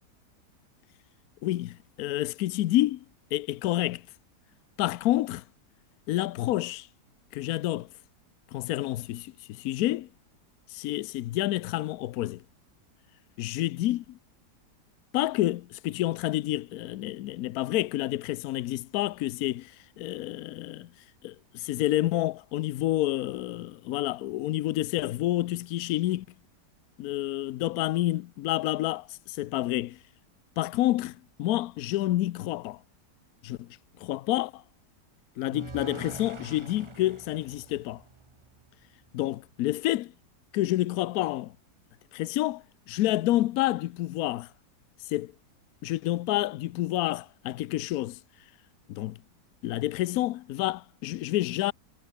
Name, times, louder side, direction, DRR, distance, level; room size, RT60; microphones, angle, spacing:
voice 1, 1.4-3.0 3.3-4.0 4.8-5.4 6.1-6.9 7.3-7.9 8.5-10.1 10.7-12.4 13.4-14.2 15.1-19.7 20.0-20.9 21.2-26.3 27.0-30.0 30.6-32.8 33.4-33.7 34.0-34.6 35.4-38.0 39.1-40.1 40.5-41.5 42.1-44.5 45.1-45.3 45.8-48.2 48.9-49.2 49.6-51.7, left 15 dB, 70° left, 1.0 m, -29 dB
sound 1, 35.5-38.7, right 4 dB, 25° right, 0.7 m, -44 dB
omnidirectional pair, 1.9 m